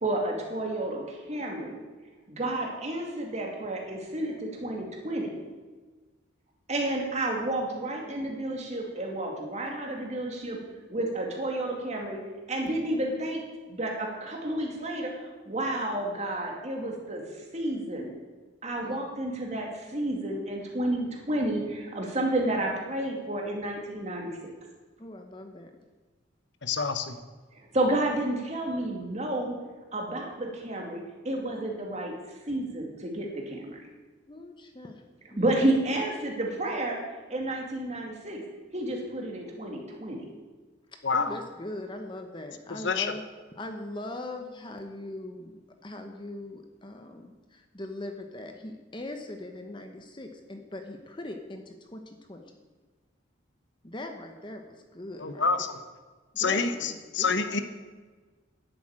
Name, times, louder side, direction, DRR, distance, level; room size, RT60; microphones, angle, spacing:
voice 1, 0.0-1.8 2.3-5.3 6.7-10.6 10.9-17.3 17.5-18.1 18.6-24.5 27.5-29.6 29.9-32.2 32.4-33.8 35.4-37.0 37.3-38.4 38.7-40.3, right 1 dB, 35° right, 1 dB, 2.4 m, -31 dB
voice 2, 25.0-25.7 34.3-35.0 35.3-35.8 40.9-43.2 43.6-52.5 53.8-55.5 56.3-57.4, left 1 dB, 25° left, 5 dB, 1.0 m, -41 dB
voice 3, 26.6-27.2 41.0-41.3 42.8-43.1 55.2-55.6 56.4-57.6, left 5 dB, 60° left, 9 dB, 0.9 m, -27 dB
11.0 x 7.9 x 8.9 m, 1.4 s
head